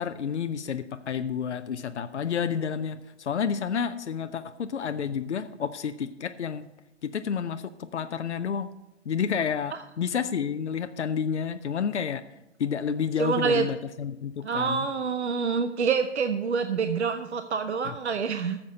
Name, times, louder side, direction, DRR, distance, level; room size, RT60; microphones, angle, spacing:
voice 1, 0.0-6.6 7.0-8.7 9.1-12.2 12.6-14.9 17.8-17.9, left 7 dB, 70° left, 10 dB, 0.7 m, -30 dB
voice 2, 13.2-13.7 14.4-18.6, right 5 dB, 65° right, 10 dB, 0.7 m, -27 dB
13.0 x 7.4 x 5.3 m, 0.94 s
figure-of-eight pair, 120°, 36 cm